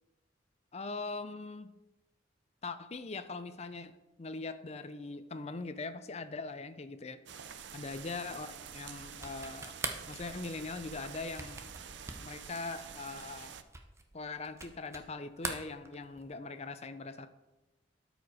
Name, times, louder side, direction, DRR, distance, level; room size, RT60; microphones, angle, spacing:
voice 1, 0.7-1.7 2.6-7.2 7.7-9.8 10.1-11.6 12.2-13.6 14.1-17.3, left 3 dB, 35° left, 11 dB, 0.5 m, -41 dB
sound 1, 7.3-13.6, right 7 dB, 70° right, 0.5 m, -48 dB
sound 2, 9.1-15.1 15.4-16.4, right 3 dB, 15° right, 0.7 m, -43 dB
12.0 x 5.1 x 4.8 m, 1.1 s
head